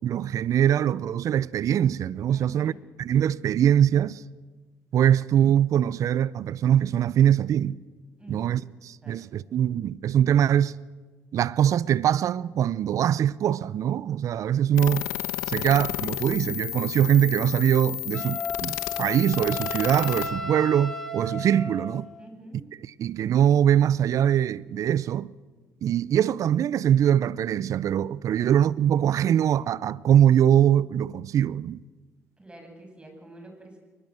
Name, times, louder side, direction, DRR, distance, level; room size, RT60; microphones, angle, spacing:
voice 1, 0.0-2.7 3.0-4.2 4.9-7.8 8.3-10.7 11.3-15.1 15.5-22.1 22.7-25.3 25.8-31.8, right 10 dB, 60° right, 0.6 m, -22 dB
voice 2, 2.3-2.9 8.2-8.7 9.0-9.1 22.2-22.6 28.3-28.4 32.4-33.8, right 1 dB, 15° right, 8.0 m, -47 dB
sound 1, 14.8-20.3, left 18 dB, 85° left, 1.1 m, -32 dB
Wind instrument woodwind instrument, 18.1-22.1, equal, 5° left, 4.7 m, -34 dB
22.5 x 20.0 x 7.9 m
supercardioid pair, 60°, 6 cm